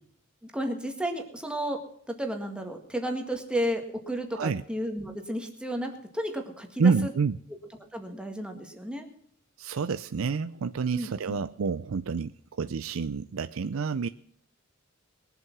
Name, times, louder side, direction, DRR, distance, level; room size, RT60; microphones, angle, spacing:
voice 1, 0.4-1.8 2.1-6.9 7.9-9.1 10.9-11.4, equal, 5° right, 3 dB, 1.9 m, -32 dB
voice 2, 6.8-7.4 9.6-14.1, right 5 dB, 70° right, 13 dB, 0.5 m, -28 dB
21.0 x 7.8 x 6.0 m, 0.65 s
head